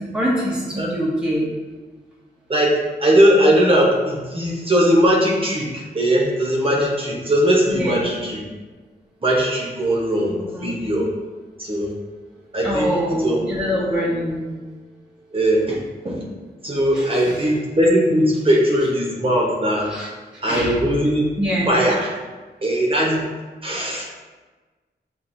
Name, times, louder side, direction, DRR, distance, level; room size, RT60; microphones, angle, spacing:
voice 1, 0.0-1.5 7.7-8.1 10.3-10.8 12.6-14.5 16.9-17.5 19.8-20.1 20.5-20.8 21.4-21.7, equal, 5° right, -5 dB, 0.8 m, -24 dB
voice 2, 2.5-8.4 9.2-10.3 10.6-11.1 11.6-11.9 12.5-12.9 13.2-13.4 15.3-15.8 16.0-16.2 16.6-19.9 20.4-21.3 21.7-22.1 22.6-23.2 23.6-24.0, equal, 30° right, -3 dB, 0.9 m, -19 dB
7.2 x 2.6 x 2.6 m, 1.3 s
wide cardioid pair, 140°, 18 cm